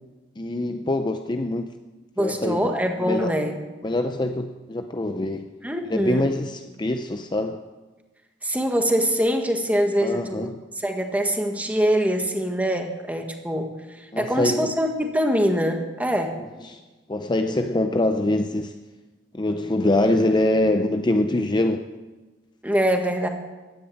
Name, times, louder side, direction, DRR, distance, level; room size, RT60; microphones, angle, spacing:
voice 1, 0.4-1.7 2.2-2.6 3.0-3.3 3.8-5.5 5.9-7.6 10.0-10.6 14.1-14.8 16.4-16.8 17.1-18.7 19.3-21.8, left 1 dB, 25° left, 7 dB, 0.6 m, -24 dB
voice 2, 2.2-3.5 5.6-6.3 8.4-10.5 10.8-13.7 14.0-16.3 22.6-23.3, equal, 10° right, 4 dB, 1.6 m, -23 dB
15.5 x 10.0 x 8.6 m, 1.2 s
head